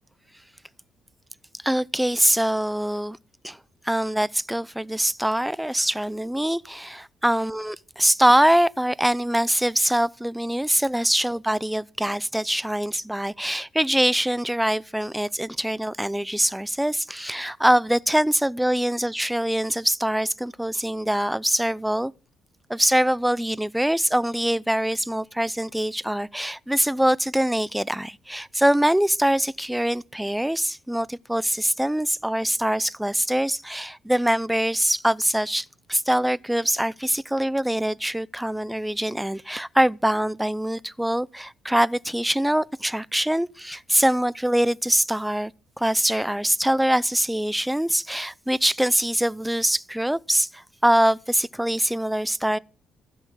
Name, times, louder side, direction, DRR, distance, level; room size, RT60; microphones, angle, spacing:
voice 1, 1.6-3.2 3.4-3.6 3.8-22.1 22.7-45.5 45.8-52.6, right 1 dB, 5° right, 0.6 m, -23 dB
16.0 x 7.1 x 9.5 m
cardioid pair, 90°, 0 cm